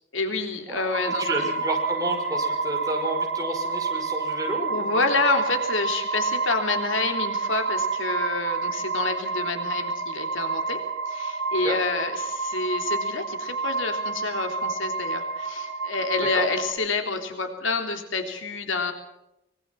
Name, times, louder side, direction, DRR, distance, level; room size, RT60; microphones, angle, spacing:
voice 1, 0.1-1.6 2.5-2.6 4.7-10.8 11.1-18.9, left 3 dB, 80° left, 5 dB, 3.3 m, -28 dB
voice 2, 0.7-5.0 11.6-11.8 16.2-16.5, right 1 dB, 20° right, 1 dB, 5.7 m, -31 dB
sound 1, 0.9-16.7, right 4 dB, 65° right, 6.0 m, -29 dB
24.5 x 22.0 x 5.9 m, 0.86 s
head